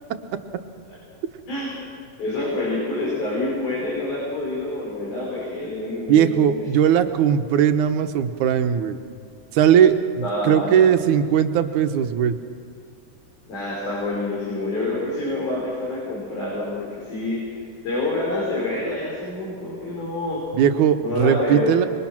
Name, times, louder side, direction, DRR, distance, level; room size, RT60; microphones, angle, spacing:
voice 1, 1.5-1.8 2.2-6.6 10.2-10.8 13.4-17.6 17.8-20.4 21.0-21.8, left 2 dB, 75° left, -5 dB, 6.8 m, -27 dB
voice 2, 6.1-9.0 9.5-12.3 20.5-21.9, right 9 dB, 75° right, 7 dB, 2.5 m, -19 dB
26.0 x 23.0 x 6.0 m, 2.2 s
omnidirectional pair, 3.6 m